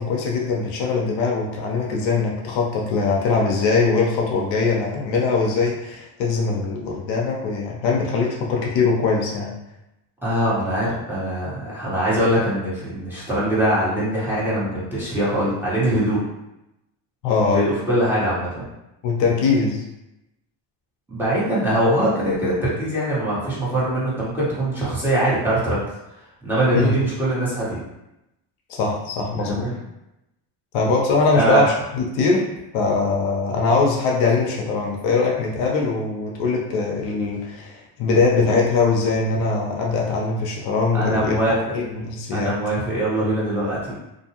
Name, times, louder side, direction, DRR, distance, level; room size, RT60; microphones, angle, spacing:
voice 1, 0.0-9.5 17.2-17.6 19.0-19.8 26.7-26.9 28.7-29.7 30.7-32.5 32.7-41.4 41.7-42.5, left 4 dB, 70° left, -1 dB, 0.7 m, -21 dB
voice 2, 10.2-16.2 17.4-18.6 21.1-25.8 26.4-27.8 29.4-29.7 31.3-31.7 40.9-41.5 42.3-43.9, right 1 dB, 5° right, -9 dB, 1.2 m, -22 dB
2.6 x 2.2 x 2.9 m, 0.90 s
supercardioid pair, 95°, 47 cm